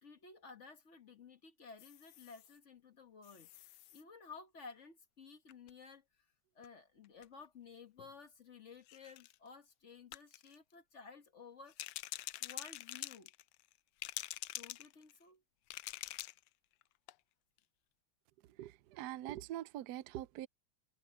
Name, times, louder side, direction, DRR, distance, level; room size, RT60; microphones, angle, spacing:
voice 1, 0.0-3.5 3.9-6.0 6.5-11.8 12.4-13.3 14.5-15.4, left 5 dB, 40° left, 1.2 m, -55 dB
sound 1, 1.8-2.6 3.2-4.0 5.5-5.7 6.6-6.7 7.0-7.2 8.0-8.1 8.8-9.3 10.1-10.5 11.7-13.7 14.0-15.2 15.7-16.5 16.8-16.9 17.1-17.2, left 15 dB, 90° left, 0.9 m, -46 dB
voice 2, 18.4-20.5, right 13 dB, 80° right, 0.9 m, -44 dB
omnidirectional pair, 2.4 m